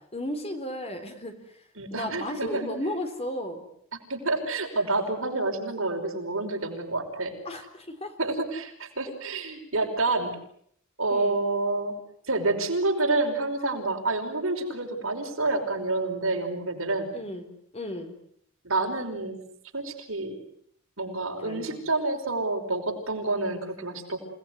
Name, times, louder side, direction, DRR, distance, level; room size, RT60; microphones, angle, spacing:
voice 1, 0.1-1.4 1.9-3.6 7.5-8.1 11.1-11.4 17.1-17.5 17.7-18.1 21.4-21.8, left 1 dB, 30° left, 6 dB, 3.9 m, -34 dB
voice 2, 1.8-2.7 4.1-7.3 8.2-10.4 11.0-11.9 12.3-17.1 18.6-19.4 19.7-20.3 21.0-24.2, right 2 dB, 70° right, 3 dB, 5.5 m, -28 dB
29.0 x 19.0 x 9.6 m, 0.68 s
head